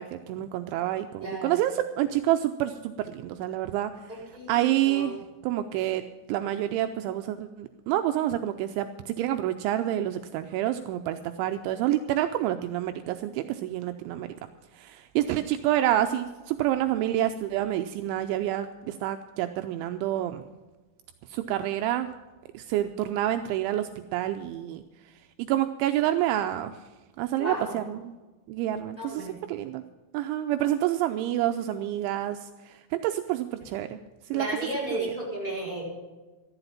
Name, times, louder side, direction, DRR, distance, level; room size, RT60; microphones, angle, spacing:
voice 1, 0.0-3.9 4.5-5.2 5.4-6.0 6.3-14.3 14.8-20.4 21.3-22.1 22.5-24.8 25.4-26.7 27.2-28.1 28.5-29.8 30.1-34.0 34.3-34.5 34.9-35.1, right 13 dB, 90° right, 8 dB, 2.6 m, -28 dB
voice 2, 1.2-1.6 4.1-5.2 27.4-27.8 29.0-29.4 34.3-35.9, right 1 dB, 5° left, -4 dB, 4.4 m, -34 dB
14.0 x 12.0 x 5.8 m, 1.2 s
omnidirectional pair, 6.0 m